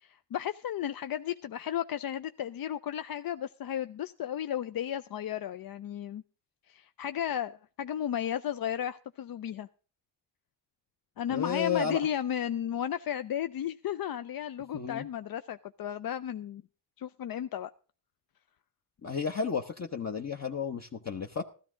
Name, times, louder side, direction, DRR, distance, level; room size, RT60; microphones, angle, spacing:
voice 1, 0.0-6.2 6.7-9.7 11.2-16.6 17.0-17.7, left 10 dB, 50° left, 0.5 m, -34 dB
voice 2, 11.3-12.0 14.7-15.1 19.0-21.4, left 6 dB, 35° left, 0.9 m, -32 dB
13.5 x 12.5 x 3.7 m
cardioid pair, 45°, 46 cm